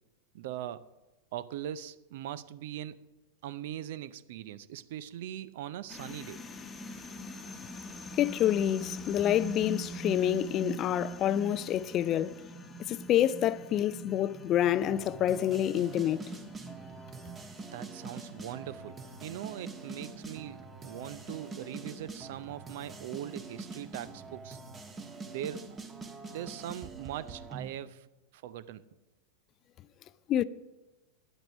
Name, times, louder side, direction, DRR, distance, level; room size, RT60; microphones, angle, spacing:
voice 1, 0.3-0.8 1.3-3.0 3.4-6.4 17.7-24.6 25.2-25.8 26.3-28.1 28.3-28.8, right 11 dB, 55° right, 0.5 m, -41 dB
sound 1, 5.9-24.4, right 1 dB, 15° left, 1.1 m, -45 dB
voice 2, 8.2-12.4 12.9-16.4 30.3-30.4, left 11 dB, 30° left, 0.4 m, -28 dB
sound 2, 14.8-27.8, right 4 dB, 20° right, 1.3 m, -45 dB
10.0 x 9.0 x 6.1 m
figure-of-eight pair, 90°, 0 cm